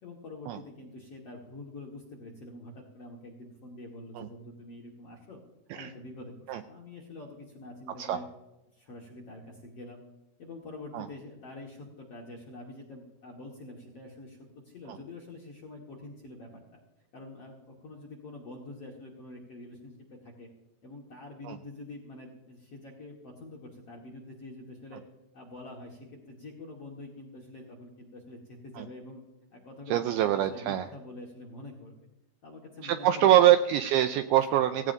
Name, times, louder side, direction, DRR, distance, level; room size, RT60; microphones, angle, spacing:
voice 1, 0.0-5.4 5.7-8.2 8.7-10.0 10.4-14.4 14.6-16.8 17.1-20.5 20.8-25.0 25.3-29.2 29.5-31.9 32.4-33.3, left 2 dB, 55° left, -2 dB, 1.7 m, -46 dB
voice 2, 29.9-30.9 32.8-34.9, right 12 dB, 85° right, 8 dB, 2.2 m, -24 dB
16.5 x 16.5 x 2.6 m, 0.99 s
omnidirectional pair, 4.9 m